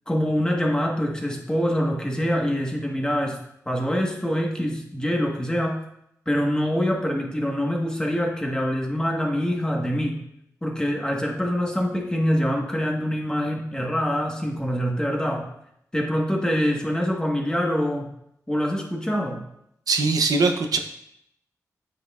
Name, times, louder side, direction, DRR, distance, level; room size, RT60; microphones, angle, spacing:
voice 1, 0.1-3.4 3.7-5.8 6.3-10.2 10.6-15.5 15.9-18.1 18.5-19.4, equal, 15° left, 0 dB, 1.3 m, -25 dB
voice 2, 19.9-20.8, right 3 dB, 80° right, 5 dB, 0.7 m, -21 dB
9.2 x 6.4 x 2.4 m, 0.76 s
wide cardioid pair, 85°, 6 cm